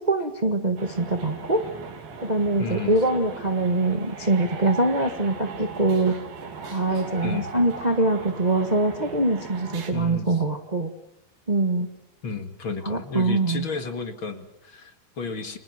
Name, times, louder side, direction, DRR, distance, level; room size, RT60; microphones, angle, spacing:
voice 1, 0.1-1.6 2.2-6.2 6.6-10.9 11.5-11.9 12.8-13.7, right 2 dB, 50° right, 6 dB, 0.5 m, -23 dB
sound 1, 0.8-9.9, right 4 dB, 85° right, 4.6 m, -38 dB
voice 2, 2.6-2.9 7.2-7.5 9.9-10.4 12.2-15.6, left 4 dB, 40° left, 7 dB, 2.4 m, -32 dB
30.0 x 25.5 x 6.1 m, 0.83 s
omnidirectional pair, 4.0 m